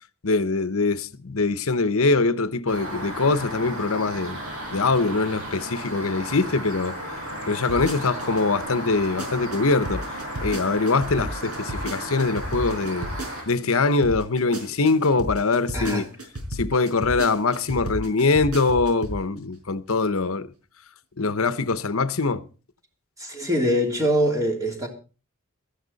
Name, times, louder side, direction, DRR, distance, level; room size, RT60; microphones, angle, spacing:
voice 1, 0.2-4.4 4.7-7.0 7.5-10.0 10.4-13.1 13.5-16.1 16.5-20.5 21.2-22.4, left 3 dB, 65° left, 0.9 m, -23 dB
sound 1, 2.7-13.4, equal, 65° right, 6.7 m, -34 dB
sound 2, 7.7-8.4 8.9-13.8 14.0-19.2 19.5-19.6, right 1 dB, 85° right, 4.9 m, -33 dB
voice 2, 15.7-16.0 23.2-24.9, equal, 15° right, 3.1 m, -23 dB
16.5 x 13.0 x 4.1 m
head